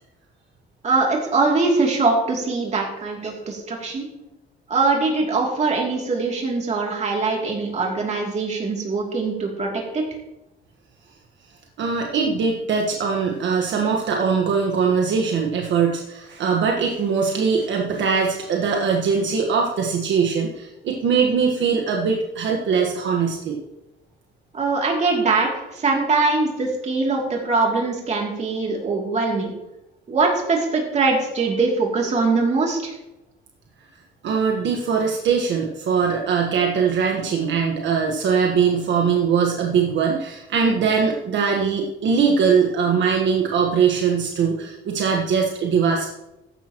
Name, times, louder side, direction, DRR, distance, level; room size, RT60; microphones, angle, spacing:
voice 1, 0.8-4.1 4.7-10.0 24.5-29.5 30.1-32.9, right 3 dB, 35° right, 0 dB, 2.9 m, -22 dB
voice 2, 11.8-23.6 34.2-46.1, right 6 dB, 65° right, 1 dB, 1.4 m, -21 dB
14.5 x 10.5 x 3.0 m, 0.93 s
cardioid pair, 145°, 21 cm